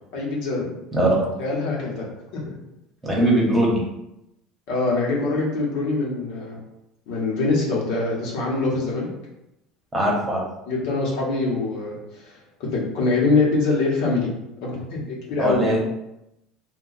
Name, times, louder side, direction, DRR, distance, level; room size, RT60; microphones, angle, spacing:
voice 1, 0.1-0.7 1.4-2.1 2.3-2.5 4.7-6.6 7.1-9.1 10.7-14.3 14.6-15.7, left 3 dB, 75° left, -3 dB, 1.0 m, -24 dB
voice 2, 0.9-1.3 3.0-3.8 9.9-10.4 15.4-15.8, right 1 dB, 15° right, -3 dB, 1.0 m, -20 dB
2.4 x 2.2 x 3.9 m, 0.87 s
supercardioid pair, 115°, 0 cm